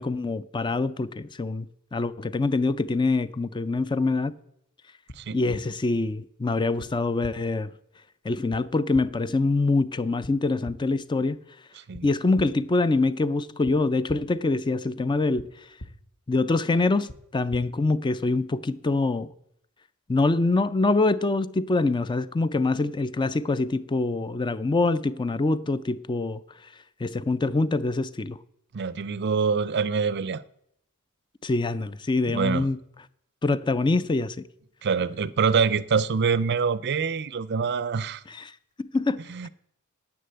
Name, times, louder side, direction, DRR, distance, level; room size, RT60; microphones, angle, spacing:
voice 1, 0.0-1.7 1.9-4.3 5.3-7.7 8.2-11.4 12.0-15.5 16.3-19.3 20.1-26.4 27.0-28.4 31.4-32.8 33.4-34.4 38.3-38.5 38.8-39.2, left 3 dB, 20° left, 0.4 m, -25 dB
sound 1, 5.1-5.2 5.5-5.6 6.8-6.9 7.2-7.3 8.5-8.6 8.9-9.0 10.2-10.3 10.6-10.7 11.9-12.0 12.4-12.5 13.7-13.8 14.1-14.2 15.4-15.5 15.8-15.9 17.1-17.2 17.5-17.6, left 1 dB, 45° left, 0.9 m, -39 dB
voice 2, 28.7-30.4 32.3-32.7 34.8-38.2 39.3-39.5, right 5 dB, 50° right, 0.5 m, -25 dB
10.0 x 8.4 x 7.7 m
head